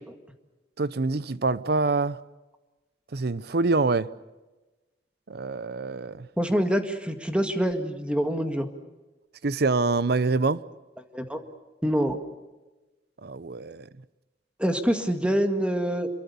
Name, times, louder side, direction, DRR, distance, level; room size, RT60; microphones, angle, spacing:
voice 1, 0.8-2.2 3.1-4.1 5.3-6.3 9.4-10.6 13.2-13.9, right 3 dB, 65° right, 0.7 m, -25 dB
voice 2, 6.4-8.7 11.1-11.4 11.8-12.2 14.6-16.1, equal, 5° right, 1.9 m, -25 dB
27.5 x 23.0 x 7.0 m
head